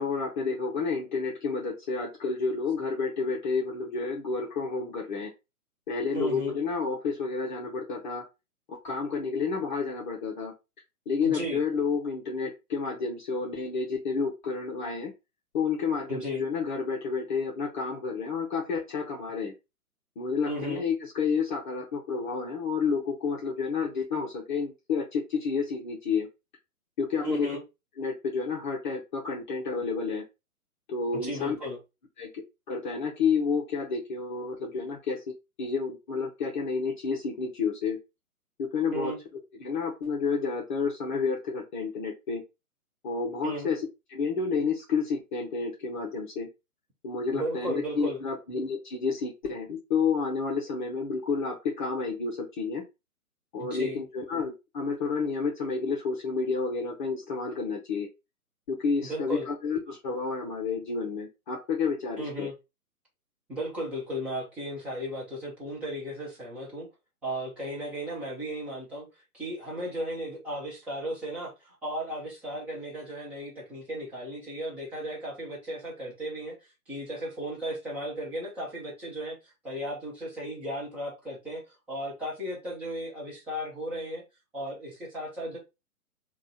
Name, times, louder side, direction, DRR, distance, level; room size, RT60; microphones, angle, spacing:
voice 1, 0.0-5.3 5.9-8.2 8.7-10.5 11.1-15.1 15.5-19.5 20.2-26.3 27.0-27.5 28.0-30.2 30.9-31.6 32.2-35.2 35.6-38.0 38.6-39.1 39.6-42.4 43.0-46.5 47.0-52.8 53.5-58.1 58.7-62.5, left 5 dB, 30° left, -2 dB, 0.8 m, -30 dB
voice 2, 6.1-6.6 11.2-11.6 16.1-16.4 20.5-20.8 27.2-27.6 31.2-31.8 38.9-39.2 43.4-43.7 47.3-48.2 53.6-54.0 59.0-59.5 62.2-62.5 63.5-66.9 67.2-69.1 69.3-84.2 84.5-85.6, equal, 5° right, -6 dB, 0.5 m, -35 dB
3.7 x 2.4 x 3.9 m, 0.25 s
figure-of-eight pair, 125°, 45 cm